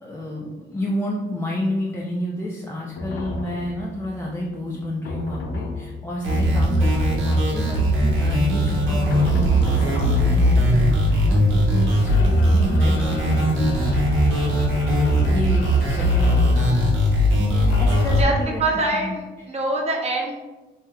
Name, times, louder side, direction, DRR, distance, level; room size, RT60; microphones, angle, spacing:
voice 1, 0.0-14.1 14.4-14.5 14.9-16.8 17.5-18.6 19.0-19.1, left 1 dB, 10° left, -5 dB, 0.4 m, -30 dB
sound 1, 3.0-18.4, left 2 dB, 70° left, 0.5 m, -34 dB
sound 2, 6.2-18.2, equal, 80° right, 1.0 m, -19 dB
voice 2, 17.9-20.4, right 2 dB, 35° right, -1 dB, 0.8 m, -25 dB
2.8 x 2.0 x 3.6 m, 1.1 s
cardioid pair, 90°, 20 cm